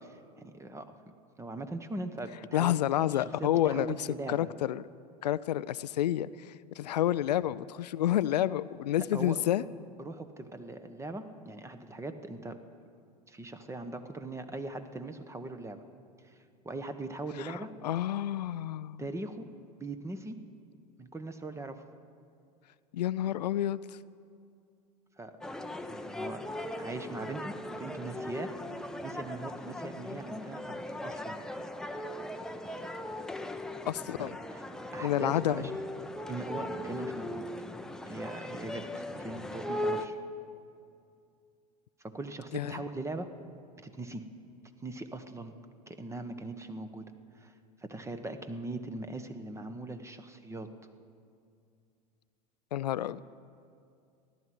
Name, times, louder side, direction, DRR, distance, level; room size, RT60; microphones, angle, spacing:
voice 1, 0.4-0.9 1.4-2.8 3.1-4.4 9.1-9.4 10.0-12.5 13.3-15.8 16.2-16.4 16.6-17.7 19.0-19.5 19.8-20.4 21.0-21.8 25.2-25.6 25.9-26.4 26.8-28.5 28.8-30.8 31.0-31.4 34.2-34.6 34.9-35.7 36.3-37.5 38.1-40.2 42.1-43.3 43.8-44.3 44.8-45.5 45.9-47.5 47.8-50.7, right 2 dB, 15° right, 9 dB, 1.1 m, -40 dB
voice 2, 2.5-4.8 5.2-9.6 17.4-19.0 22.9-24.0 33.8-34.4 35.0-35.7 42.5-42.8 52.7-53.2, left 12 dB, 85° left, 16 dB, 0.4 m, -29 dB
sound 1, 25.4-40.1, left 1 dB, 5° left, 0.8 m, -39 dB
15.0 x 11.5 x 7.7 m, 2.4 s
hypercardioid pair, 90°, 21 cm